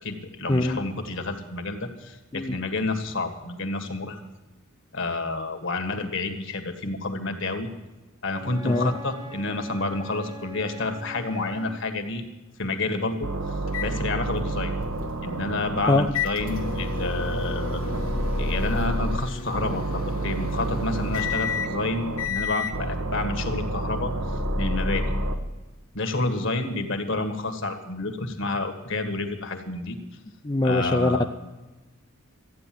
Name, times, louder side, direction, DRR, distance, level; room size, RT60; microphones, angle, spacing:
voice 1, 0.0-4.2 4.9-7.7 8.2-12.2 12.6-14.7 15.2-17.8 18.4-25.1 25.9-30.0 30.6-31.2, left 2 dB, 65° left, 6 dB, 1.7 m, -29 dB
Wind instrument woodwind instrument, 8.3-11.9, right 1 dB, 20° right, 1.0 m, -42 dB
sound 1, 13.2-16.1 16.4-19.2 19.5-22.3 22.7-25.3, right 1 dB, 80° right, 1.4 m, -29 dB
sound 2, 13.7-22.8, left 6 dB, 85° left, 1.6 m, -34 dB
voice 2, 30.4-31.2, left 2 dB, 20° left, 4 dB, 0.5 m, -22 dB
14.0 x 9.5 x 7.7 m, 1.2 s
head